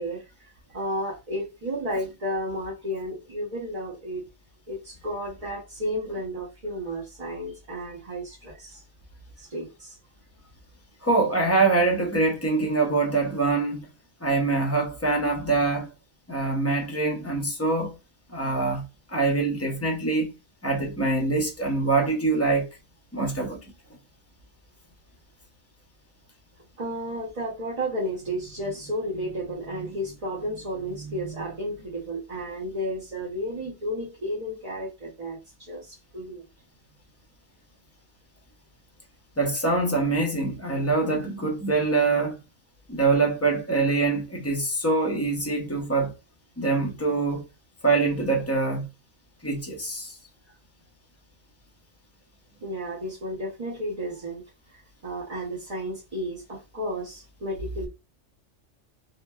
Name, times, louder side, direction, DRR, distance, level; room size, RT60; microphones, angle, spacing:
voice 1, 0.0-4.2 4.7-8.8 9.4-10.0 26.8-36.5 52.6-54.4 54.7-57.9, equal, 40° right, 0.7 m, -33 dB
voice 2, 11.0-13.9 14.2-15.9 16.3-18.0 18.3-20.3 20.6-22.7 23.1-23.6 39.4-42.4 42.9-46.1 46.6-47.4 47.8-48.9 49.4-50.2, right 3 dB, 20° left, 0.5 m, -24 dB
2.9 x 2.1 x 2.2 m
omnidirectional pair, 1.3 m